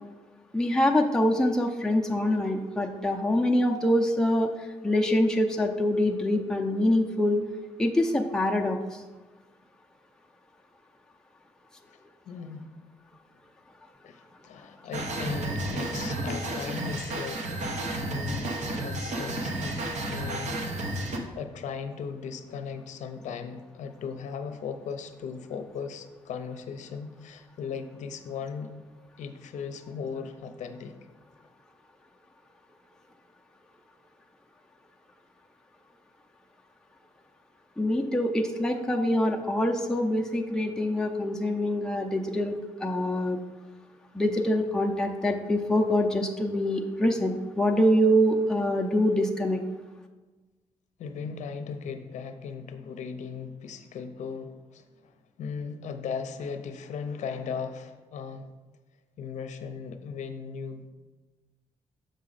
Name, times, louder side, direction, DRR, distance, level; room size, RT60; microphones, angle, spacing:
voice 1, 0.5-7.4 7.8-9.0 37.8-42.5 42.8-43.4 44.1-49.6, left 1 dB, 5° left, 1 dB, 0.6 m, -25 dB
voice 2, 12.3-12.7 14.0-20.7 21.1-28.7 29.2-31.0 51.0-55.1 55.4-58.5 59.2-60.9, left 6 dB, 75° left, 8 dB, 0.6 m, -37 dB
sound 1, 14.9-21.2, right 1 dB, 70° right, 1.0 m, -32 dB
6.5 x 4.9 x 4.0 m, 1.3 s
cardioid pair, 80°, 12 cm